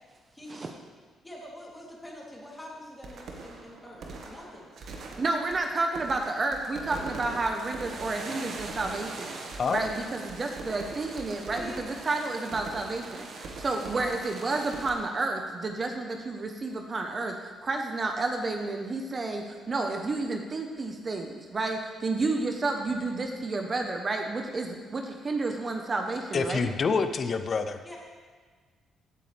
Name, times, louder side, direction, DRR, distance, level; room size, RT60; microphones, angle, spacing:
voice 1, 1.2-4.6 11.4-11.8 14.0-14.2 27.8-28.0, left 1 dB, 10° left, -4 dB, 3.1 m, -45 dB
sound 1, 3.0-14.9, right 3 dB, 65° right, 1.7 m, -41 dB
voice 2, 5.2-26.7, right 3 dB, 35° right, 3 dB, 1.0 m, -31 dB
voice 3, 9.6-9.9 26.3-27.8, left 4 dB, 45° left, 9 dB, 0.7 m, -27 dB
16.0 x 8.3 x 3.4 m, 1.5 s
cardioid pair, 90°, 0 cm